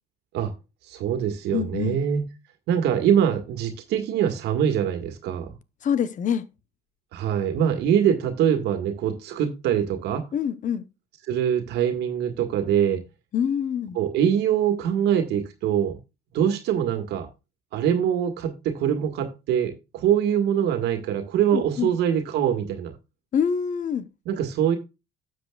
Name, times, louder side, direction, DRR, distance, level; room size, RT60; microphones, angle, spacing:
voice 1, 0.9-2.3 2.7-5.5 7.1-10.3 11.3-13.0 14.0-16.0 16.3-17.3 17.7-22.9 24.3-24.8, right 9 dB, 85° right, 1.7 m, -23 dB
voice 2, 1.5-2.0 5.8-6.4 10.3-10.8 13.3-14.0 21.5-21.9 23.3-24.0, left 8 dB, 50° left, 1.0 m, -25 dB
12.5 x 7.7 x 2.4 m
cardioid pair, 110°, 17 cm